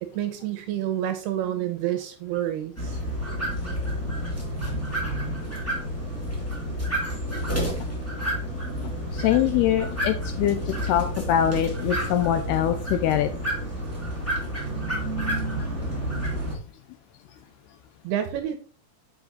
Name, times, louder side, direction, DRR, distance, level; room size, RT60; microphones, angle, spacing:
voice 1, 0.0-3.0 18.0-18.6, right 11 dB, 80° right, 8 dB, 2.5 m, -28 dB
sound 1, 2.8-16.6, equal, 10° left, 0.8 m, -29 dB
voice 2, 9.1-13.3, left 11 dB, 80° left, 9 dB, 2.4 m, -23 dB
7.5 x 6.2 x 4.0 m, 0.41 s
omnidirectional pair, 5.2 m